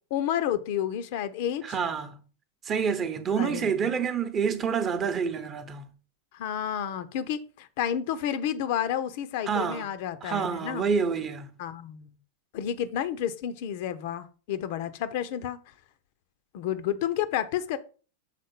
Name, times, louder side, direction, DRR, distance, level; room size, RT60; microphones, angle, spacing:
voice 1, 0.1-1.8 3.4-4.1 6.3-10.8 11.6-12.1 12.5-15.6 16.5-17.8, left 10 dB, 50° left, 0.6 m, -30 dB
voice 2, 1.6-2.2 2.6-5.9 9.5-9.9 10.2-11.5, right 6 dB, 25° right, 0.9 m, -28 dB
6.7 x 3.8 x 5.2 m
figure-of-eight pair, 90°, 0 cm